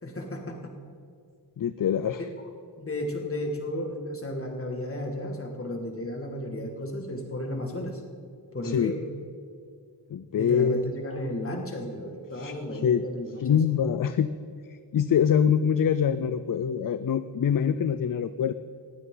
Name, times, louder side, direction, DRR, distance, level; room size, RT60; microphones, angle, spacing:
voice 1, 0.0-0.8 2.0-2.3 2.8-8.0 8.5-9.0 10.4-13.6, left 1 dB, 30° left, 2 dB, 2.1 m, -33 dB
voice 2, 1.6-2.2 8.6-8.9 10.1-10.9 12.3-13.0 13.4-14.3 14.7-18.5, left 8 dB, 50° left, 12 dB, 0.5 m, -25 dB
19.5 x 15.0 x 3.9 m, 2.2 s
wide cardioid pair, 130°, 43 cm